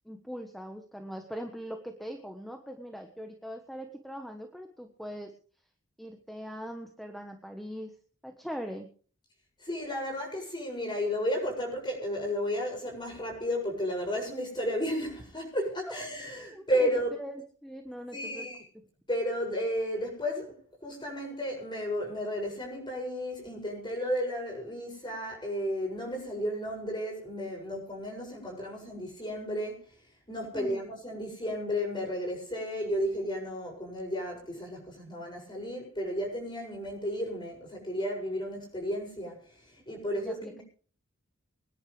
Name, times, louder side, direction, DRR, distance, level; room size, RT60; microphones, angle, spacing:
voice 1, 0.0-5.3 6.0-7.9 8.2-8.9 16.3-16.9 17.2-18.5 30.5-30.8 40.1-40.6, equal, ahead, 1.3 m, -41 dB
voice 2, 9.6-17.2 18.1-18.6 19.1-20.6 20.8-29.9 30.3-40.6, equal, 20° left, 7.2 m, -33 dB
25.5 x 10.5 x 3.4 m
head